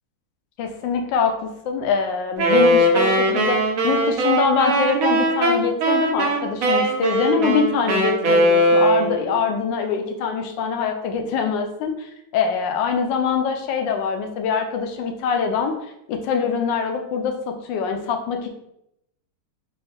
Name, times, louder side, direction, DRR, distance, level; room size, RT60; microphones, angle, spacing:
voice 1, 0.6-1.4 1.6-15.7 16.1-18.5, left 6 dB, 90° left, 5 dB, 1.3 m, -24 dB
Wind instrument woodwind instrument, 2.4-9.3, right 1 dB, 65° right, 0.9 m, -19 dB
4.2 x 2.6 x 3.2 m, 0.81 s
omnidirectional pair, 1.9 m